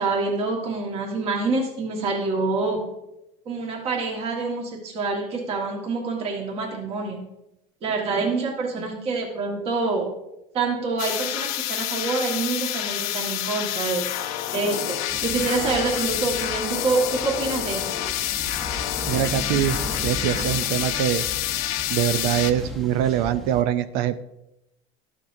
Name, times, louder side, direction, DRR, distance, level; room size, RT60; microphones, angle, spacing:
voice 1, 0.0-2.8 3.4-7.2 7.8-10.1 10.5-17.8, right 3 dB, 35° right, -1 dB, 1.5 m, -26 dB
sound 1, 11.0-22.5, left 12 dB, 85° left, 0.7 m, -28 dB
sound 2, 15.1-23.6, left 1 dB, ahead, 0.8 m, -36 dB
voice 2, 19.1-19.8 20.0-21.2 21.9-24.2, right 11 dB, 65° right, 12 dB, 0.4 m, -23 dB
13.0 x 6.0 x 2.6 m, 0.89 s
cardioid pair, 155°, 17 cm